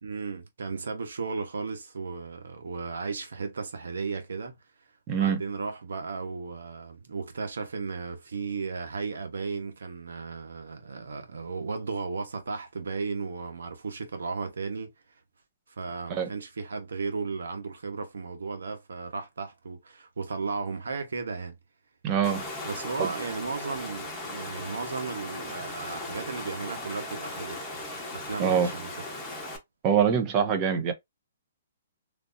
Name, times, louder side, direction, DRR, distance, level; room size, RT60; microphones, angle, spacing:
voice 1, 0.0-4.6 5.1-14.9 15.8-21.6 22.6-27.6 28.1-28.9, right 4 dB, 90° right, 1.1 m, -35 dB
voice 2, 5.1-5.4 16.1-16.3 22.0-22.4 23.0-23.1 28.4-28.7 29.8-30.9, right 7 dB, 25° right, 0.7 m, -24 dB
Water, 22.2-29.6, left 2 dB, 10° left, 1.0 m, -38 dB
3.3 x 2.7 x 2.6 m
hypercardioid pair, 160°, 0 cm